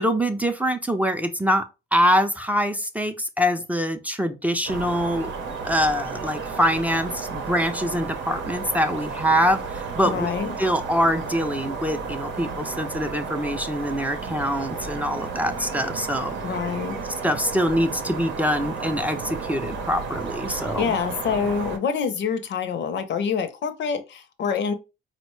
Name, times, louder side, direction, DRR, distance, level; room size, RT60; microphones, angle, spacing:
voice 1, 0.0-1.6 1.9-5.3 5.6-10.3 10.6-16.3 17.2-20.9, equal, 5° right, 0.4 m, -24 dB
sound 1, 4.7-21.8, right 4 dB, 70° right, 0.7 m, -33 dB
voice 2, 10.0-10.5 16.4-17.0 20.5-24.7, left 6 dB, 65° left, 0.6 m, -26 dB
4.0 x 2.1 x 3.0 m
cardioid pair, 90°, 20 cm